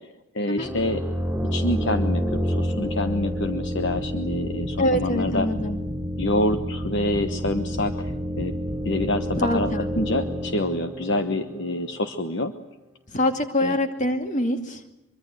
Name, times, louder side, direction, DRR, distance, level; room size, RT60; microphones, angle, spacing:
voice 1, 0.3-1.0 1.5-5.5 6.2-8.5 8.8-12.5 13.6-13.8, left 1 dB, 55° left, 8 dB, 1.2 m, -27 dB
sound 1, 0.6-12.1, equal, 5° right, 7.4 m, -29 dB
voice 2, 4.8-5.8 9.4-9.9 13.1-14.8, left 1 dB, 35° left, 6 dB, 2.3 m, -24 dB
24.0 x 23.5 x 7.9 m, 0.93 s
head